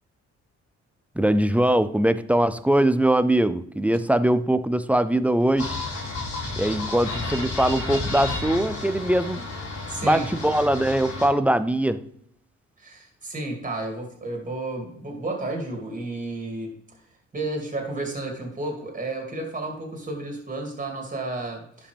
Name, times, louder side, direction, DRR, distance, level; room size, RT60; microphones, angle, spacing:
voice 1, 1.2-5.8 6.6-9.5 10.0-12.0, right 1 dB, 5° right, 13 dB, 0.4 m, -22 dB
sound 1, 5.6-11.3, left 3 dB, 75° left, 2.8 m, -32 dB
voice 2, 9.9-10.3 12.8-16.7 17.3-21.9, right 2 dB, 25° right, 1 dB, 2.6 m, -32 dB
11.0 x 5.2 x 3.4 m, 0.69 s
cardioid pair, 90°, 30 cm